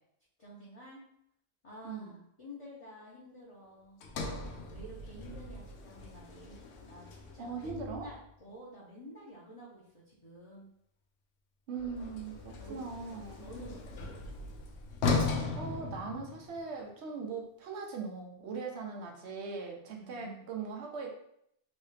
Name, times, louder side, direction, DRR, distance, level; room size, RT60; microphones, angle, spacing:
voice 1, 0.4-1.0 1.6-10.6 12.6-12.9 13.4-14.5 19.9-20.5, equal, 35° left, -7 dB, 0.7 m, -50 dB
voice 2, 1.8-2.2 7.4-8.1 11.7-13.4 15.6-21.1, right 5 dB, 85° right, 1 dB, 1.0 m, -40 dB
Sliding door, 4.0-8.3 11.7-16.7, left 4 dB, 90° left, 0.9 m, -37 dB
3.1 x 2.8 x 3.2 m, 0.73 s
omnidirectional pair, 1.1 m